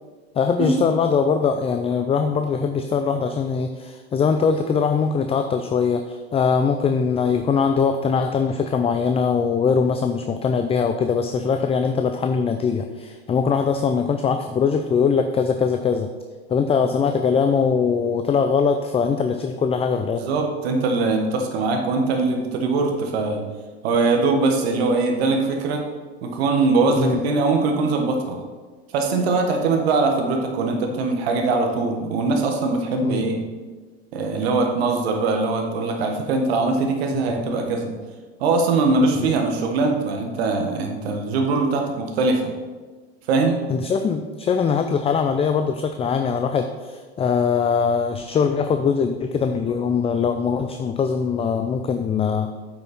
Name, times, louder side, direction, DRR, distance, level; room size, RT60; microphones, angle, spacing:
voice 1, 0.3-16.1 16.5-20.2 27.0-27.2 33.0-33.5 37.1-37.5 39.2-39.3 43.7-52.5, left 6 dB, 20° left, 7 dB, 0.4 m, -22 dB
voice 2, 20.2-23.4 23.8-25.8 26.2-28.4 28.9-33.4 34.1-37.9 38.4-42.5 43.3-43.6, right 3 dB, 75° right, 3 dB, 1.5 m, -21 dB
8.7 x 5.8 x 4.2 m, 1.4 s
hypercardioid pair, 90°, 32 cm